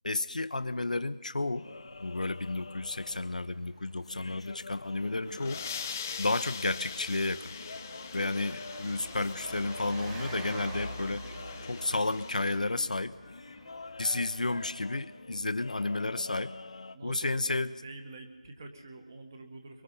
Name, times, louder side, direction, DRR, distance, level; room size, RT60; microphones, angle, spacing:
voice 1, 0.0-1.7 2.0-5.6 6.2-7.5 8.1-11.2 11.7-13.1 14.0-16.5 17.0-17.7, left 2 dB, 75° left, 12 dB, 1.0 m, -32 dB
sound 1, 1.5-17.0, left 3 dB, 50° left, 1.1 m, -47 dB
Car passing by, 1.7-14.9, right 1 dB, 10° right, 2.1 m, -47 dB
sound 2, 5.1-12.6, left 6 dB, 15° left, 0.7 m, -43 dB
voice 2, 16.9-19.8, right 3 dB, 30° right, 5 dB, 1.9 m, -47 dB
23.5 x 22.5 x 5.6 m, 1.0 s
figure-of-eight pair, 170°, 4 cm